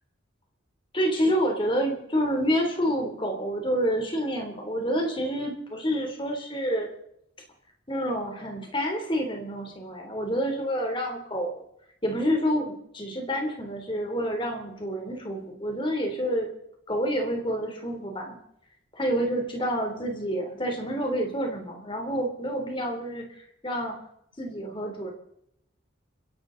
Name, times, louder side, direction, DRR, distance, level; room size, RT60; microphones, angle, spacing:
voice 1, 0.9-6.9 7.9-11.6 12.0-16.5 16.9-18.4 19.0-24.0 24.4-25.1, equal, 25° left, 2 dB, 3.1 m, -28 dB
30.0 x 11.5 x 3.9 m, 0.77 s
head